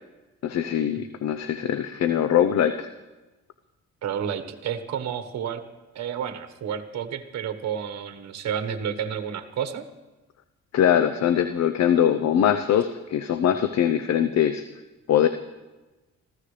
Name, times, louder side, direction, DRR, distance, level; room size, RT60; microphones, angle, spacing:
voice 1, 0.4-2.9 10.7-14.6 15.1-15.3, left 9 dB, 60° left, 10 dB, 0.7 m, -22 dB
voice 2, 4.0-5.6 5.9-9.8, right 8 dB, 60° right, 7 dB, 1.4 m, -30 dB
25.5 x 15.5 x 3.3 m, 1.2 s
cardioid pair, 90°, 30 cm